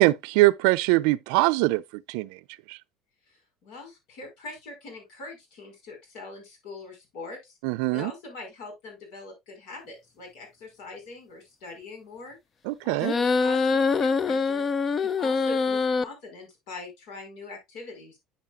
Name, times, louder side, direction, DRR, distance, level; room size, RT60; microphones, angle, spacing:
voice 1, 0.0-1.8 2.1-2.3 2.7-2.8 7.6-8.1 12.7-13.1, right 21 dB, 85° right, 0.4 m, -22 dB
voice 2, 3.3-7.5 7.9-12.4 12.8-14.6 15.0-18.2, left 3 dB, 75° left, 5.0 m, -42 dB
sound 1, 13.0-16.0, left 4 dB, 30° left, 0.5 m, -24 dB
8.8 x 7.5 x 2.4 m
cardioid pair, 125°, 0 cm